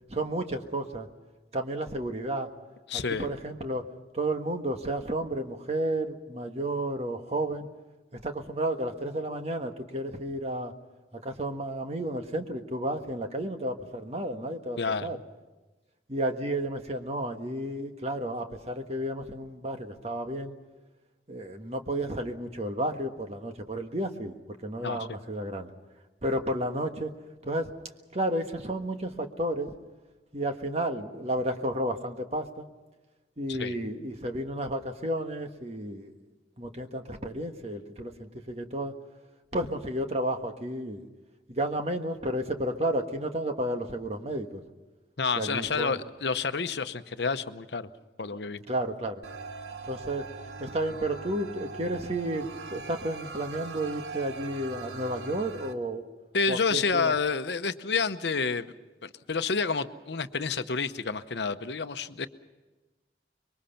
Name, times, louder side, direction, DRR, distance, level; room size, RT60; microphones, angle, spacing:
voice 1, 0.1-1.1 1.5-2.5 2.9-3.8 4.1-7.7 8.1-10.7 11.1-15.2 16.1-20.5 21.3-24.3 24.6-25.7 26.2-27.1 27.4-27.7 28.1-29.7 30.3-32.6 33.4-36.1 36.6-38.9 39.5-41.0 41.5-44.6 45.4-45.9 48.7-49.2 49.9-50.3 50.6-56.1 56.5-57.1, right 1 dB, 35° right, 5 dB, 1.5 m, -32 dB
voice 2, 2.9-3.3 14.8-15.1 24.8-25.1 33.5-33.7 45.2-47.9 48.2-48.6 56.3-58.7 59.0-62.3, left 5 dB, 75° left, 10 dB, 0.9 m, -29 dB
sound 1, 49.2-55.7, right 4 dB, 70° right, 1.2 m, -41 dB
25.5 x 22.5 x 5.8 m, 1.2 s
head